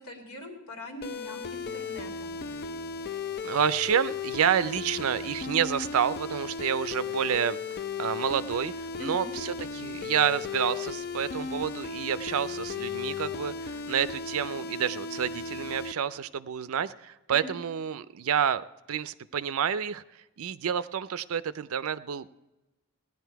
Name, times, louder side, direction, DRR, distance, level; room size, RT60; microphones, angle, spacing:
voice 1, 0.0-2.4 9.0-9.3 17.3-17.5, equal, 80° left, 2 dB, 2.6 m, -42 dB
sound 1, 1.0-15.9, left 5 dB, 45° left, 0.4 m, -36 dB
voice 2, 3.4-7.6 8.0-20.0 20.4-22.3, right 8 dB, 70° right, 15 dB, 0.5 m, -29 dB
17.0 x 10.5 x 4.6 m, 1.0 s
head